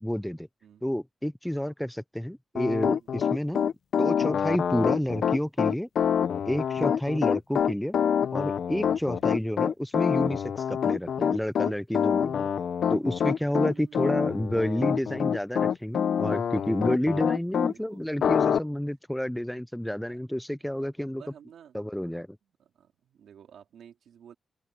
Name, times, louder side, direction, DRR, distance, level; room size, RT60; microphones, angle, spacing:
voice 1, 0.0-0.5 0.8-3.7 4.0-5.9 6.5-7.9 8.3-12.5 12.9-21.2 21.7-22.3, equal, 5° left, 0.5 m, -30 dB
Piano, 2.6-17.7 18.2-18.6, left 8 dB, 80° left, 0.7 m, -26 dB
voice 2, 2.9-3.7 6.7-7.0 9.1-9.3 13.6-14.1 17.6-18.0 20.0-20.2 20.8-20.9 21.2-21.8 22.6-24.3, right 8 dB, 85° right, 3.3 m, -53 dB
open air
cardioid pair, 65°, 0 cm